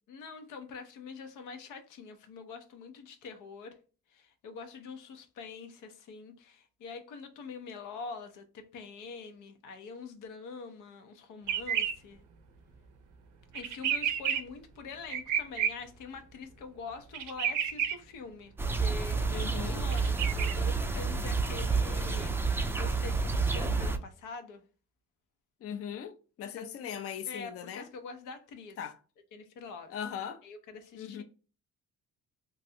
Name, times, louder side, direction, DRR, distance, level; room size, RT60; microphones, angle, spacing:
voice 1, 0.1-3.7 4.1-12.2 13.5-24.6 26.5-26.7 27.3-28.8 29.3-30.0 30.4-31.2, left 4 dB, 85° left, 0.7 m, -45 dB
sound 1, 11.5-11.9 13.5-14.4 15.1-15.7 17.1-17.9 19.9-20.5, right 9 dB, 90° right, 0.6 m, -30 dB
sound 2, 18.6-24.0, right 4 dB, 10° right, 0.3 m, -29 dB
voice 2, 19.3-19.8 25.6-27.9 28.8-29.0 29.9-30.4 30.9-31.2, left 8 dB, 50° left, 0.5 m, -39 dB
3.0 x 2.5 x 2.7 m
cardioid pair, 90°, 30 cm